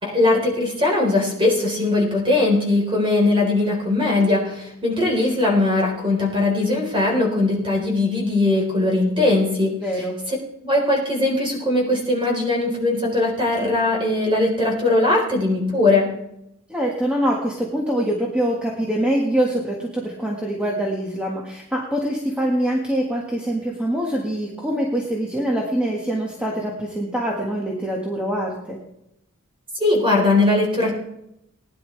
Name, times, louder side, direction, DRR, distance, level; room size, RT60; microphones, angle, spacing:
voice 1, 0.0-9.7 10.3-10.4 10.6-16.1 29.8-30.9, left 2 dB, 25° right, -1 dB, 4.0 m, -20 dB
voice 2, 9.8-10.2 16.7-28.8, right 1 dB, 5° right, -2 dB, 1.6 m, -24 dB
20.0 x 10.5 x 3.3 m, 0.81 s
head